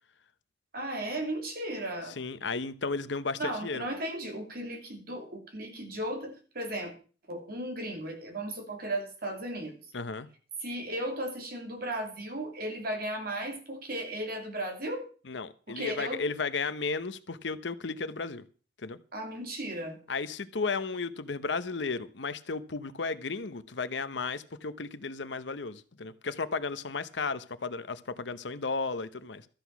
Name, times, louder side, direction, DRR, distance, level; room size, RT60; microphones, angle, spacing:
voice 1, 0.7-2.2 3.4-6.9 7.3-9.8 10.6-15.1 15.7-16.2 19.1-20.0, right 1 dB, 55° right, 3.0 m, -35 dB
voice 2, 2.2-3.9 9.9-10.3 15.3-18.4 18.8-19.0 20.1-29.5, left 4 dB, 80° left, 0.9 m, -34 dB
13.5 x 8.2 x 5.9 m
head